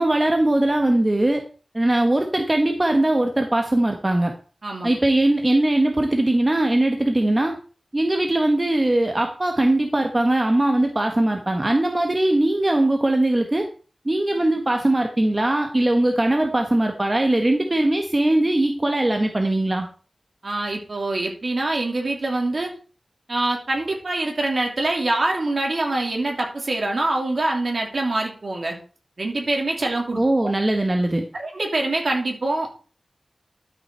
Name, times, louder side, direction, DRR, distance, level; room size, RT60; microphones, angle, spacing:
voice 1, 0.0-1.4 1.7-4.3 4.8-7.6 7.9-13.7 14.0-19.9 30.2-31.3, right 1 dB, 25° right, 3 dB, 1.2 m, -20 dB
voice 2, 4.6-4.9 20.4-22.7 23.3-28.8 29.2-30.5 31.3-32.8, right 2 dB, 55° right, 1 dB, 3.1 m, -25 dB
12.0 x 5.8 x 4.4 m, 0.38 s
wide cardioid pair, 85°, 0 cm